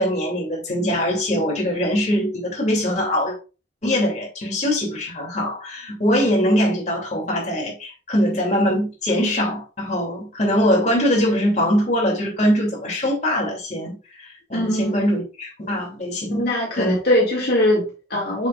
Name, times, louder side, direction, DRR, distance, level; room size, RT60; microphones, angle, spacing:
voice 1, 0.0-3.3 3.8-16.5 16.8-16.9, equal, 40° left, 2.7 m, -22 dB
voice 2, 14.5-15.0 16.3-18.5, left 1 dB, 55° left, 2.2 m, -21 dB
6.6 x 6.6 x 2.4 m
head